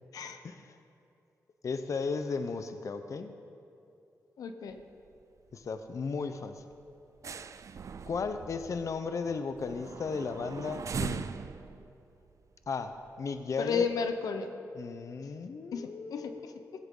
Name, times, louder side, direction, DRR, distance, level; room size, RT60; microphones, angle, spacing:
voice 1, 0.4-0.8 1.6-3.3 5.5-6.6 8.1-11.3 12.7-13.9 14.7-16.7, left 4 dB, 60° left, 9 dB, 0.7 m, -35 dB
voice 2, 4.4-4.8 13.6-14.5 15.7-16.5, left 6 dB, 90° left, 7 dB, 0.8 m, -33 dB
sound 1, 4.7-5.2 5.5-5.7 6.0-6.2 6.6-13.3 13.8-13.9, right 6 dB, 60° right, 0.5 m, -41 dB
16.0 x 15.5 x 3.9 m, 2.7 s
cardioid pair, 70°, 6 cm